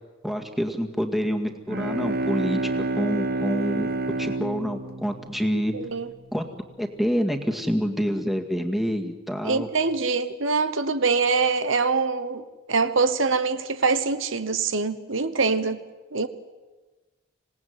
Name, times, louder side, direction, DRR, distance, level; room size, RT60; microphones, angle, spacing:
voice 1, 0.2-3.9 4.2-5.7 6.3-6.5 6.8-9.7, equal, ahead, 2.0 m, -27 dB
Bowed string instrument, 1.5-6.2, right 2 dB, 50° right, 1.3 m, -29 dB
voice 2, 5.7-6.1 9.4-15.8 16.1-16.3, right 4 dB, 65° right, 1.1 m, -24 dB
26.5 x 18.5 x 9.6 m
head